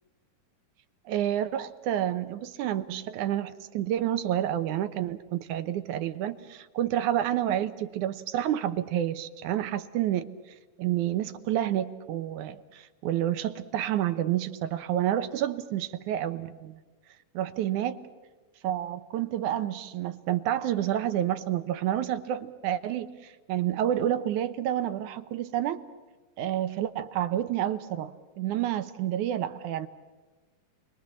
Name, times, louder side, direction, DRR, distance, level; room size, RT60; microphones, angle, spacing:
voice 1, 1.1-10.3 10.8-16.8 17.3-18.0 18.6-25.8 26.4-29.9, right 11 dB, 70° right, 10 dB, 2.2 m, -29 dB
29.0 x 23.0 x 7.3 m, 1.3 s
omnidirectional pair, 4.0 m